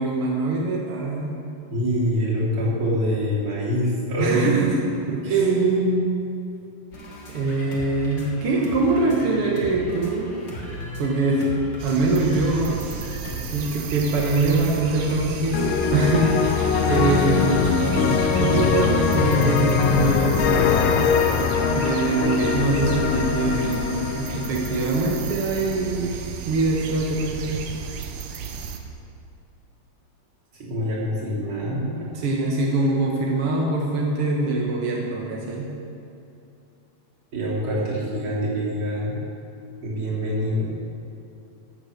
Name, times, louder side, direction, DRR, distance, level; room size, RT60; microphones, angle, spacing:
voice 1, 0.0-1.3 4.2-5.3 7.3-10.3 11.0-11.4 11.8-12.8 13.4-21.0 21.7-26.2 26.5-27.7 32.1-35.7, right 3 dB, 65° right, -2 dB, 1.4 m, -23 dB
voice 2, 1.7-4.6 5.2-6.0 30.6-32.1 37.3-39.1 39.8-40.6, right 1 dB, 35° right, -7 dB, 3.8 m, -24 dB
sound 1, 6.9-19.9, left 2 dB, 40° left, 1.7 m, -35 dB
sound 2, 11.8-28.8, right 6 dB, 80° right, 2.7 m, -34 dB
sound 3, 15.5-25.6, left 7 dB, 75° left, 2.1 m, -22 dB
14.0 x 8.0 x 6.6 m, 2.7 s
omnidirectional pair, 4.2 m